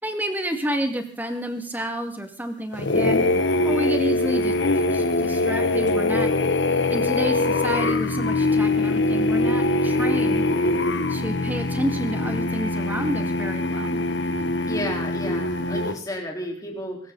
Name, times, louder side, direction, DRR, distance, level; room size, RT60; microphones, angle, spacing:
voice 1, 0.0-3.2 3.6-4.5 4.9-6.3 6.9-10.4 11.1-14.0, equal, 10° right, 6 dB, 2.1 m, -29 dB
sound 1, 2.7-16.0, left 2 dB, 80° left, 1.2 m, -23 dB
voice 2, 14.7-17.0, left 1 dB, 20° left, 0 dB, 4.1 m, -32 dB
23.5 x 13.0 x 4.0 m, 0.43 s
head